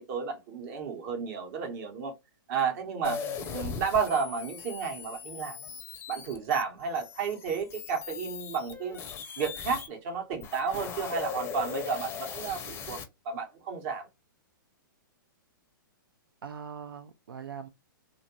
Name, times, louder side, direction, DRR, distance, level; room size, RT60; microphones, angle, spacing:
voice 1, 0.0-2.1 2.5-3.2 3.5-5.6 6.1-9.0 9.4-13.0 13.2-14.1, right 5 dB, 45° right, 1.0 m, -32 dB
sound 1, 3.0-9.9 10.3-13.0, left 7 dB, 20° left, 0.5 m, -39 dB
voice 2, 3.0-3.3 16.4-17.7, right 6 dB, 80° right, 0.4 m, -42 dB
2.6 x 2.5 x 2.9 m
hypercardioid pair, 120°, 11 cm